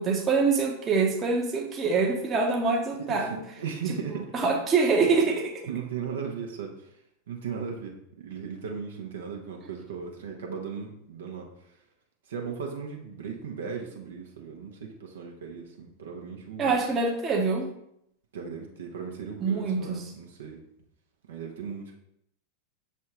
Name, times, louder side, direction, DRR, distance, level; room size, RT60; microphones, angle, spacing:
voice 1, 0.0-3.4 4.3-5.7 16.6-17.7 19.4-20.1, right 4 dB, 25° right, 1 dB, 0.9 m, -25 dB
voice 2, 3.0-4.3 5.0-5.1 5.7-7.0 7.3-11.7 12.3-16.8 18.3-20.6 21.3-21.9, right 6 dB, 60° right, 1 dB, 0.9 m, -37 dB
6.5 x 3.4 x 4.4 m, 0.76 s
figure-of-eight pair, 90°, 0 cm